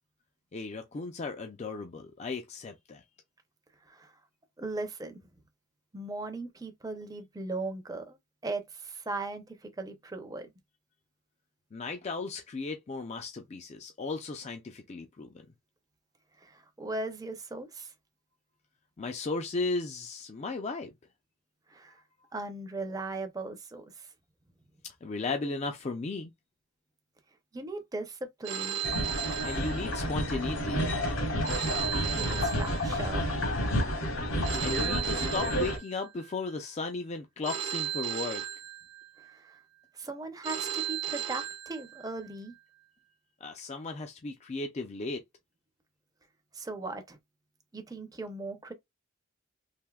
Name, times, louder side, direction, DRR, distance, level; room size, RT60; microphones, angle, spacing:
voice 1, 0.5-3.0 11.7-15.3 19.0-20.9 24.8-26.3 29.4-30.9 34.5-38.4 43.4-45.2, left 3 dB, 30° left, 0.4 m, -35 dB
voice 2, 4.6-5.2 5.9-8.2 8.4-10.5 16.4-17.9 21.7-22.0 22.3-24.1 27.5-28.8 31.7-33.3 39.2-39.6 39.9-42.5 46.5-47.2 47.7-48.7, right 2 dB, 15° right, 0.5 m, -38 dB
Telephone, 28.4-30.3 31.4-33.3 34.4-36.3 37.4-39.3 40.4-42.3, right 10 dB, 55° right, 0.7 m, -36 dB
sound 1, 28.8-35.8, equal, 65° left, 1.2 m, -30 dB
3.4 x 2.6 x 2.2 m
head